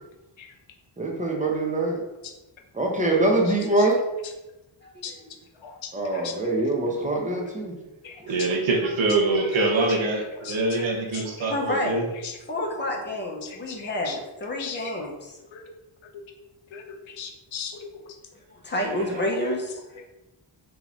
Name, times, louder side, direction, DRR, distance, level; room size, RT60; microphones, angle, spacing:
voice 1, 1.0-2.0 2.7-4.0 5.9-7.7, right 2 dB, 15° right, -1 dB, 0.6 m, -24 dB
voice 2, 4.8-5.3 8.2-8.3 11.5-12.0 12.5-15.4 18.5-20.1, left 1 dB, 25° left, -1 dB, 0.6 m, -30 dB
voice 3, 8.3-12.0, right 2 dB, 85° right, 0 dB, 0.8 m, -24 dB
voice 4, 11.1-11.5 13.4-14.1 14.6-14.8 15.5-15.6 16.7-17.9, left 7 dB, 80° left, 2 dB, 0.7 m, -38 dB
3.7 x 2.9 x 2.4 m, 1.0 s
wide cardioid pair, 120°, 46 cm